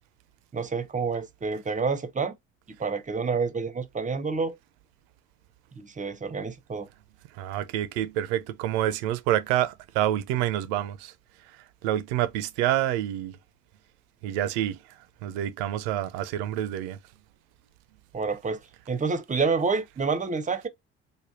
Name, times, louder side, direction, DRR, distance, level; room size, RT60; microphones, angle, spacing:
voice 1, 0.5-2.4 2.7-4.6 5.7-6.9 18.1-18.6 18.9-20.7, right 4 dB, 20° right, 0.7 m, -28 dB
voice 2, 7.3-11.1 11.8-13.4 14.2-14.8 15.2-17.0, right 12 dB, 70° right, 0.6 m, -27 dB
3.4 x 2.1 x 3.7 m
hypercardioid pair, 50°, 35 cm